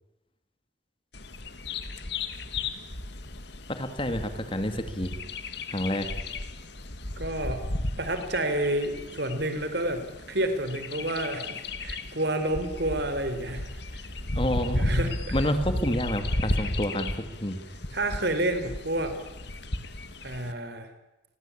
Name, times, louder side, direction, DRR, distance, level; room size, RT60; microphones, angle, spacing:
Bird vocalization bird call bird song, 1.1-20.5, left 2 dB, 60° left, 2.2 m, -34 dB
voice 1, 3.7-5.1 5.7-6.1 14.3-14.9 15.3-17.6, left 1 dB, 25° left, 8 dB, 2.3 m, -29 dB
voice 2, 7.2-7.6 8.0-14.0 14.7-15.4 17.9-19.2 20.2-20.9, right 1 dB, 55° right, 9 dB, 4.2 m, -29 dB
30.0 x 22.0 x 8.7 m, 0.99 s
head